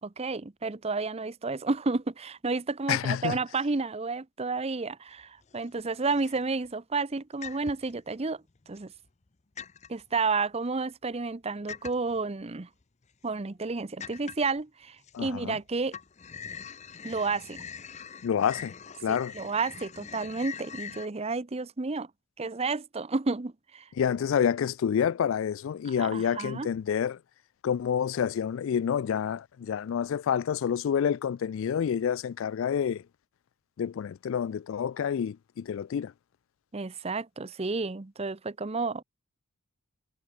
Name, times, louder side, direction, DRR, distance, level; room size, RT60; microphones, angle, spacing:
voice 1, 0.0-8.9 9.9-12.7 13.2-15.9 17.0-17.6 19.1-22.1 22.4-23.9 26.0-26.7 36.7-39.0, right 3 dB, 30° right, 0.7 m, -31 dB
voice 2, 2.9-3.4 15.1-15.6 18.2-18.7 19.0-19.3 24.0-27.2 27.6-33.0 33.8-36.1, left 8 dB, 65° left, 0.3 m, -28 dB
sound 1, 5.2-5.7 6.0-6.7 7.4-8.0 8.6-9.3 9.6-10.0 11.7-12.2 12.8-12.9 13.3-13.4 14.0-14.6 15.0-15.6 15.9-21.1, left 7 dB, 30° left, 0.7 m, -43 dB
head